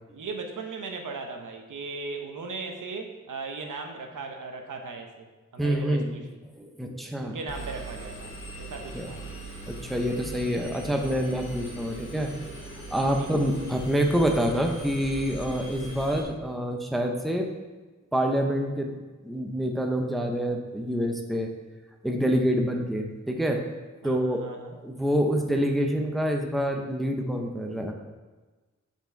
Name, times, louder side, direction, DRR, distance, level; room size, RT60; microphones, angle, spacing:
voice 1, 0.1-5.3 5.5-6.3 7.2-9.2 13.2-13.3 24.0-24.8, right 3 dB, 85° right, 4 dB, 0.9 m, -37 dB
voice 2, 5.6-6.2 6.6-7.4 8.9-9.1 9.7-12.3 12.9-17.5 18.1-21.5 22.0-23.6 24.0-24.4 24.7-27.9, equal, ahead, 2 dB, 0.6 m, -27 dB
Engine, 7.5-16.2, right 2 dB, 40° left, 1.3 m, -40 dB
8.2 x 4.4 x 4.5 m, 1.3 s
wide cardioid pair, 180°, 31 cm